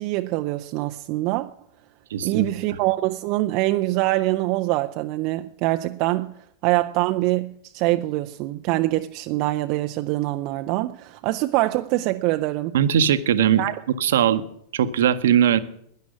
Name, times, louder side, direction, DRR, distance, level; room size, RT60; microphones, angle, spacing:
voice 1, 0.0-1.5 2.2-6.3 6.6-12.8 13.6-13.8, right 18 dB, 45° right, 0.5 m, -24 dB
voice 2, 2.1-2.5 12.7-13.6 14.0-14.4 14.7-15.6, right 9 dB, 60° right, 0.9 m, -19 dB
12.0 x 10.5 x 9.5 m
figure-of-eight pair, 90°, 0 cm